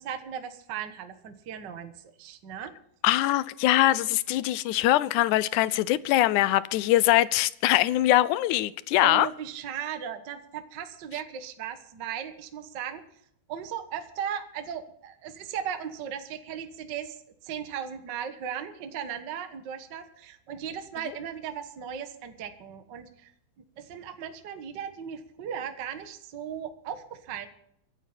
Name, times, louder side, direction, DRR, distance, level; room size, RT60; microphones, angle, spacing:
voice 1, 0.0-2.7 9.0-13.0 13.5-17.2 17.4-23.3 23.8-27.5, right 8 dB, 50° right, 1.4 m, -37 dB
voice 2, 3.0-9.3, left 15 dB, 80° left, 2.1 m, -22 dB
24.5 x 9.1 x 4.4 m
omnidirectional pair, 3.6 m